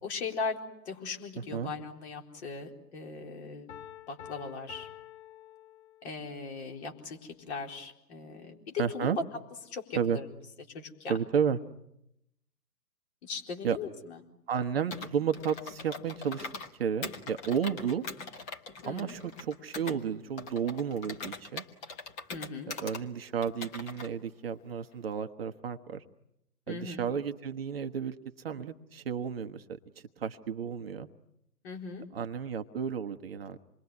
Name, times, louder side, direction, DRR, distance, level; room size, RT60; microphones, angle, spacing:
voice 1, 0.0-0.6 0.9-3.7 4.1-4.9 6.0-9.1 9.7-10.3 10.7-11.2 13.2-14.2 18.8-19.1 22.3-22.7 26.7-27.1 31.6-32.1, left 4 dB, 40° left, 3 dB, 4.2 m, -39 dB
voice 2, 1.4-1.7 8.8-9.2 10.0-10.2 11.1-11.6 13.6-13.8 14.5-16.5 16.8-18.0 18.8-21.6 22.7-26.0 26.7-29.8 30.2-31.1 32.1-33.6, right 7 dB, 35° right, 7 dB, 1.1 m, -32 dB
Piano, 3.7-6.3, left 10 dB, 60° left, 2.6 m, -48 dB
Computer keyboard, 14.9-16.7 17.0-20.0 20.4-23.0 23.4-24.1, left 3 dB, 15° left, 1.2 m, -42 dB
27.5 x 22.0 x 9.6 m, 0.83 s
figure-of-eight pair, 140°, 48 cm